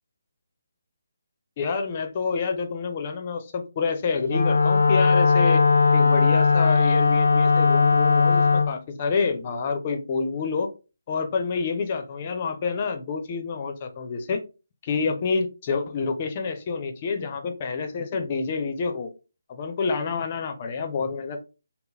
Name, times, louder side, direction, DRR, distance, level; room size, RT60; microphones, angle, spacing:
voice 1, 1.6-5.6 5.9-10.7 11.1-14.4 14.8-19.1 19.5-21.4, left 5 dB, 35° left, 5 dB, 0.7 m, -28 dB
Wind instrument woodwind instrument, 4.2-8.7, left 4 dB, 70° left, 0.4 m, -19 dB
3.8 x 2.1 x 4.1 m, 0.31 s
figure-of-eight pair, 150°, 0 cm